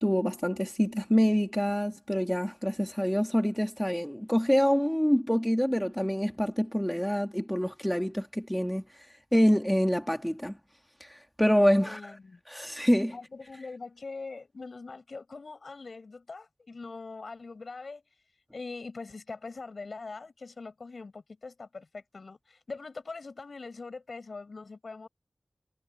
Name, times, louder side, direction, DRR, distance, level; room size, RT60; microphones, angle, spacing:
voice 1, 0.0-8.8 9.3-10.6 11.0-12.2 12.5-13.1, equal, 5° left, 2.0 m, -26 dB
voice 2, 11.8-12.4 13.1-18.0 18.5-25.1, left 4 dB, 75° left, 7.0 m, -42 dB
wide cardioid pair, 80°, 0 cm